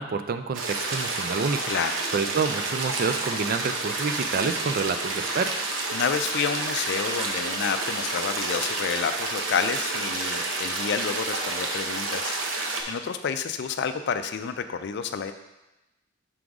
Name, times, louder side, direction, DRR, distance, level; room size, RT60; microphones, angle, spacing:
voice 1, 0.0-1.6 2.1-5.8, right 5 dB, 45° right, 9 dB, 0.4 m, -28 dB
sound 1, 0.5-12.8, right 3 dB, 70° right, 0.8 m, -29 dB
voice 2, 1.7-2.0 5.9-15.3, left 6 dB, 60° left, 9 dB, 0.4 m, -29 dB
6.1 x 3.8 x 4.7 m, 1.0 s
head